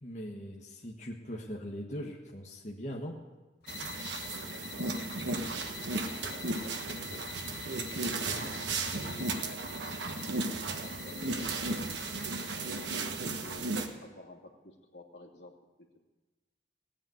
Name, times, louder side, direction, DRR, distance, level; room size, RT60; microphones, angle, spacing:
voice 1, 0.0-3.2, equal, 40° left, -1 dB, 1.5 m, -40 dB
sound 1, 3.6-13.0, left 9 dB, 60° left, 0.9 m, -48 dB
sound 2, 3.7-13.9, right 3 dB, 85° right, 1.4 m, -35 dB
voice 2, 4.3-7.3 7.9-9.3 11.0-11.5 12.5-13.7 14.0-16.0, left 1 dB, 80° left, 0 dB, 2.6 m, -52 dB
17.0 x 9.0 x 9.3 m, 1.2 s
head